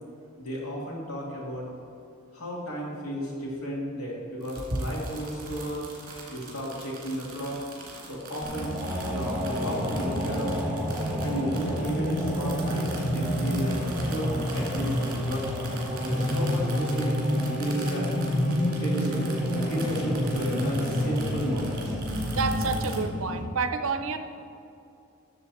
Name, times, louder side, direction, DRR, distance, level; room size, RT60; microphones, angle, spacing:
voice 1, 0.4-1.6 2.3-5.8 6.3-7.6 8.1-8.8 9.1-10.6 11.2-15.5 16.0-18.1 18.8-19.2 19.7-22.0, equal, 90° left, -3 dB, 2.7 m, -33 dB
sound 1, 4.4-23.0, right 2 dB, 45° right, 2.5 m, -41 dB
sound 2, 8.4-23.4, equal, 5° right, 1.2 m, -28 dB
voice 2, 22.3-24.2, right 4 dB, 70° right, 9 dB, 0.7 m, -29 dB
12.5 x 7.1 x 4.3 m, 2.6 s
head